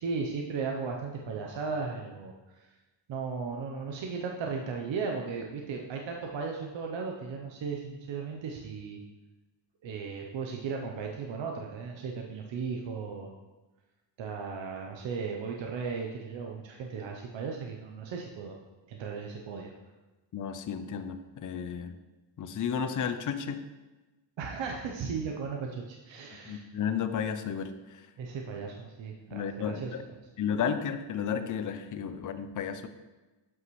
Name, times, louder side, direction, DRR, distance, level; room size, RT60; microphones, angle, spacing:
voice 1, 0.0-2.7 3.1-9.0 9.8-13.3 14.2-18.6 18.9-19.7 24.4-26.6 28.2-29.9, right 5 dB, 75° right, 1 dB, 0.8 m, -36 dB
voice 2, 20.3-22.0 22.4-23.6 26.5-28.0 29.3-30.0 30.4-32.9, left 7 dB, 45° left, 10 dB, 0.6 m, -33 dB
7.7 x 5.8 x 3.1 m, 1.2 s
cardioid pair, 75°, 46 cm